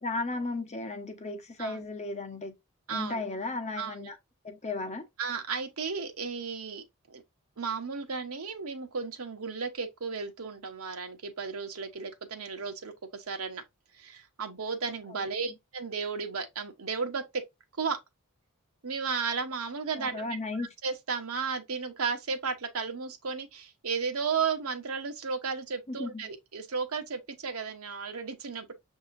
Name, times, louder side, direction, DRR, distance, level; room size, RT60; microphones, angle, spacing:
voice 1, 0.0-2.5 2.9-4.2 4.4-5.1 15.1-15.2 20.0-20.7 25.9-26.3, left 2 dB, 30° left, 0.9 m, -35 dB
voice 2, 2.9-3.2 3.8-4.1 5.2-7.2 7.6-13.6 14.0-17.2 17.8-18.0 18.8-20.3 20.6-28.7, right 5 dB, 75° right, 0.9 m, -34 dB
6.6 x 2.8 x 2.5 m
head